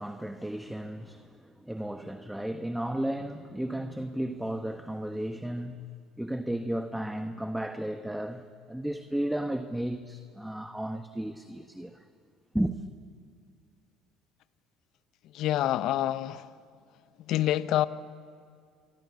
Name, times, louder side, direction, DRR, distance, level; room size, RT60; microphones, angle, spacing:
voice 1, 0.0-5.9 6.2-12.0 12.5-12.8, right 1 dB, 5° right, 1.4 m, -34 dB
voice 2, 15.3-16.5 17.3-17.9, left 13 dB, 65° left, 1.0 m, -27 dB
26.5 x 23.5 x 8.4 m
hypercardioid pair, 70°, 0 cm